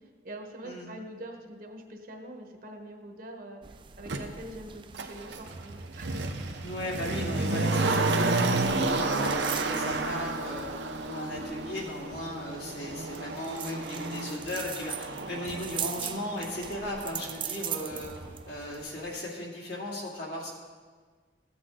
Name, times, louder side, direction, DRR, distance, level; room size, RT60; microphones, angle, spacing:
voice 1, 0.2-6.3, right 1 dB, 55° right, 3 dB, 1.2 m, -44 dB
sound 1, 3.6-19.2, right 8 dB, 30° right, 0.4 m, -42 dB
Motor vehicle (road), 4.1-4.2 4.9-17.9 18.2-18.3, right 3 dB, 90° right, 0.8 m, -31 dB
voice 2, 6.6-10.7 11.0-18.1 18.5-20.5, left 1 dB, 65° left, -4 dB, 2.5 m, -37 dB
14.5 x 8.1 x 3.8 m, 1.5 s
head